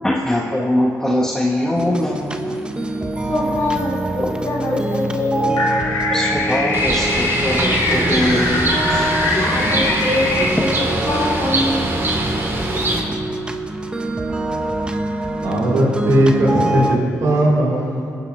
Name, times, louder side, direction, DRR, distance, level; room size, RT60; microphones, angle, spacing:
voice 1, 0.0-2.6 4.2-4.8 5.8-9.4, left 1 dB, 10° left, -1 dB, 1.0 m, -22 dB
sound 1, 1.7-17.0, right 1 dB, 15° right, 0.8 m, -25 dB
voice 2, 3.3-5.7 9.3-12.0, left 1 dB, 50° left, -3 dB, 3.2 m, -24 dB
sound 2, 5.6-10.4, left 3 dB, 80° left, 2.0 m, -22 dB
Bird, 6.7-13.0, right 1 dB, 40° right, 2.4 m, -23 dB
voice 3, 15.4-18.1, right 1 dB, 75° right, -5 dB, 3.7 m, -17 dB
21.5 x 10.0 x 3.2 m, 2.5 s
cardioid pair, 75°, 6 cm